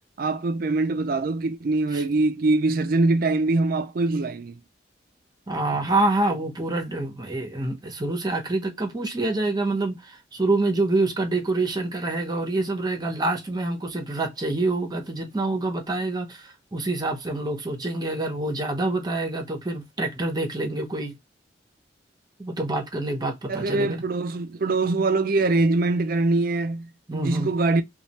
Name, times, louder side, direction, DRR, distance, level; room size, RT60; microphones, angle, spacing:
voice 1, 0.2-4.6 23.5-27.8, right 2 dB, 50° right, 0.4 m, -23 dB
voice 2, 5.5-21.1 22.4-24.0 27.1-27.5, right 2 dB, 20° right, 0.7 m, -26 dB
3.2 x 2.3 x 2.8 m
head